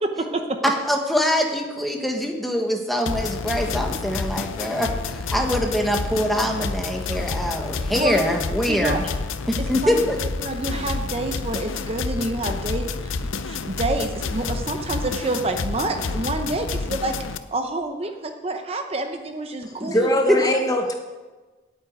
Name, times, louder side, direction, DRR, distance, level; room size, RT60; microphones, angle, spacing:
voice 1, 0.0-0.6 7.9-8.2 8.7-9.0 9.8-9.9 10.4-13.1 13.5-17.1 17.5-20.6, right 2 dB, 30° right, 5 dB, 0.7 m, -28 dB
voice 2, 0.6-9.0 9.5-10.2 20.3-20.4, equal, ahead, 2 dB, 1.2 m, -24 dB
sound 1, 3.1-17.4, left 4 dB, 90° left, 0.6 m, -29 dB
voice 3, 19.6-20.9, left 1 dB, 20° left, 4 dB, 0.9 m, -22 dB
8.9 x 8.2 x 9.2 m, 1.3 s
head